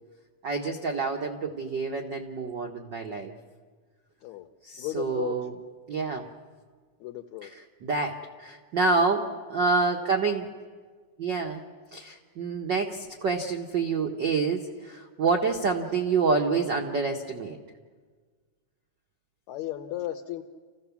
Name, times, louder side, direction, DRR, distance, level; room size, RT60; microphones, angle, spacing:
voice 1, 0.4-3.3 4.6-5.5 5.9-6.3 7.4-10.5 11.2-11.6 11.9-17.6, right 4 dB, 75° right, 3 dB, 1.0 m, -27 dB
voice 2, 4.8-5.4 7.0-7.5 19.5-20.4, left 14 dB, 75° left, 4 dB, 1.9 m, -34 dB
28.5 x 15.5 x 7.1 m, 1.5 s
omnidirectional pair, 3.8 m